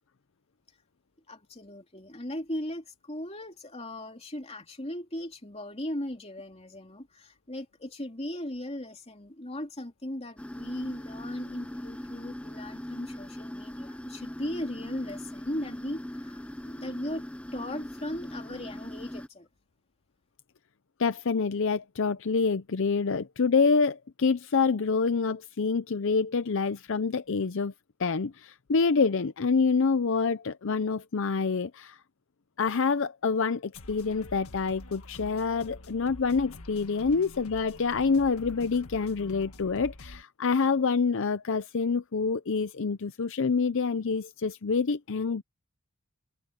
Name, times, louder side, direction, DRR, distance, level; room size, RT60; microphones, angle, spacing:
voice 1, 1.3-17.3 17.5-19.5, left 1 dB, 25° left, 3.1 m, -38 dB
sound 1, 10.4-19.3, left 1 dB, 5° left, 0.4 m, -40 dB
voice 2, 21.0-27.7 28.0-32.0 32.6-45.4, left 4 dB, 60° left, 0.6 m, -27 dB
sound 2, 33.7-40.2, left 2 dB, 75° left, 1.6 m, -47 dB
head